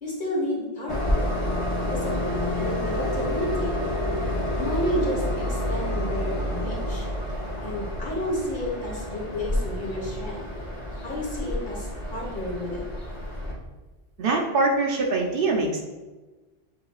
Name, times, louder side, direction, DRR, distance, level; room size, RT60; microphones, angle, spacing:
voice 1, 0.0-1.3 1.8-3.8 4.5-5.2 5.5-7.1 7.6-10.5 11.0-12.8, equal, 50° left, -5 dB, 1.5 m, -31 dB
Train, 0.9-13.5, left 1 dB, 30° left, 0.9 m, -29 dB
voice 2, 14.2-15.8, right 3 dB, 60° right, 0 dB, 0.8 m, -23 dB
7.6 x 2.8 x 2.4 m, 1.2 s
omnidirectional pair, 1.1 m